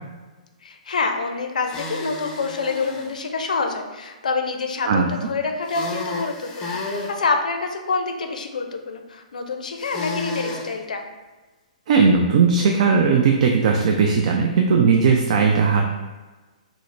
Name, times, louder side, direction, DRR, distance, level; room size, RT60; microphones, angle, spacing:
voice 1, 0.6-11.0, left 4 dB, 85° left, 4 dB, 0.4 m, -27 dB
sound 1, 1.6-3.1 5.6-7.1 9.8-10.7, left 3 dB, 20° left, 0.5 m, -31 dB
voice 2, 4.9-5.3 11.9-15.8, right 5 dB, 55° right, 2 dB, 0.3 m, -18 dB
3.8 x 2.0 x 3.2 m, 1.3 s
hypercardioid pair, 135°, 4 cm